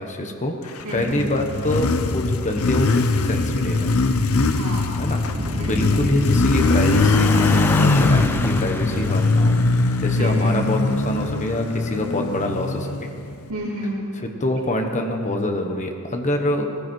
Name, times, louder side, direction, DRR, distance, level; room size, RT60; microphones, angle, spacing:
voice 1, 0.0-4.0 5.0-5.2 5.6-9.6 10.0-13.1 14.4-16.7, left 1 dB, 35° left, 3 dB, 1.3 m, -25 dB
Motorcycle, 0.8-13.5, left 3 dB, 70° left, 0.7 m, -21 dB
voice 2, 0.8-1.3 4.5-5.0 5.6-6.0 10.2-10.6 13.5-14.1, right 1 dB, 75° right, -10 dB, 3.7 m, -29 dB
sound 1, 5.3-11.6, equal, 40° right, 1.3 m, -32 dB
sound 2, 6.6-11.6, left 2 dB, 10° left, 0.4 m, -31 dB
19.0 x 15.5 x 4.6 m, 2.5 s
head